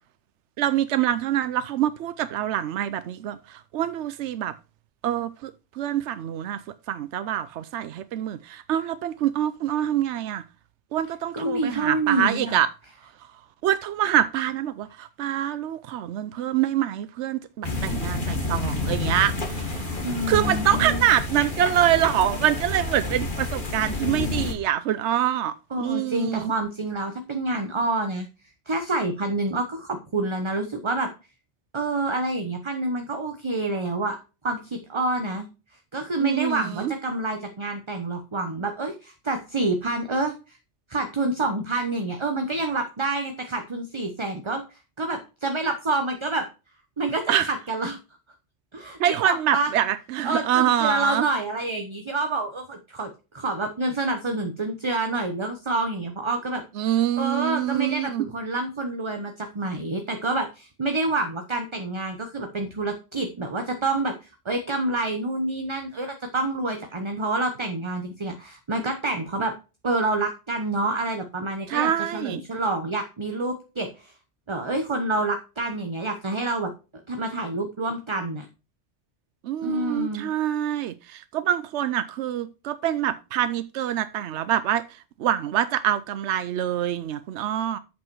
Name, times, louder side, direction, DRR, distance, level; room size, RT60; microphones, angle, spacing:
voice 1, 0.6-4.5 5.0-6.6 6.9-10.4 10.9-12.7 13.6-26.5 36.2-36.9 47.3-47.5 49.0-51.3 56.8-58.3 71.7-72.4 79.4-84.8 85.2-87.8, right 11 dB, 85° right, 0.9 m, -25 dB
voice 2, 11.3-12.6 20.0-21.0 25.7-28.3 28.7-31.1 31.7-34.2 34.4-35.5 35.9-40.6 40.9-46.5 47.0-48.0 48.7-49.7 50.2-56.6 57.2-64.1 64.4-69.5 69.8-74.1 74.5-76.7 77.1-78.5 79.6-80.3, right 2 dB, 30° right, 0.9 m, -27 dB
sound 1, 17.6-24.5, left 2 dB, 45° left, 1.9 m, -29 dB
7.9 x 5.6 x 4.6 m
omnidirectional pair, 1.2 m